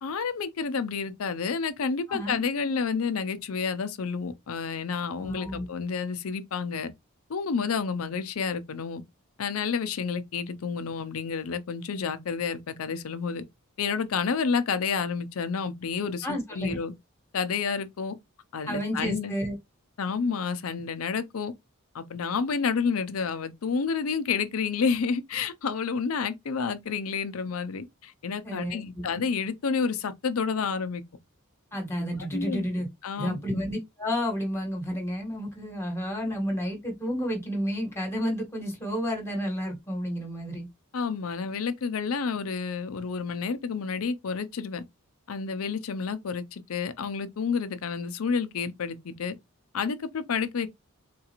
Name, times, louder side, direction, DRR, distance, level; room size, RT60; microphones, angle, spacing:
voice 1, 0.0-6.9 7.3-9.0 9.4-13.4 13.8-16.9 17.3-18.2 18.5-19.3 20.0-21.5 21.9-31.0 32.3-32.6 33.0-33.6 40.9-44.8 45.3-49.3 49.7-50.7, left 5 dB, 80° left, 0.5 m, -30 dB
voice 2, 2.1-2.4 5.2-5.7 16.2-16.8 18.7-19.5 28.4-29.0 31.7-32.9 33.2-40.7, equal, 10° left, 1.3 m, -31 dB
3.7 x 2.4 x 2.9 m
head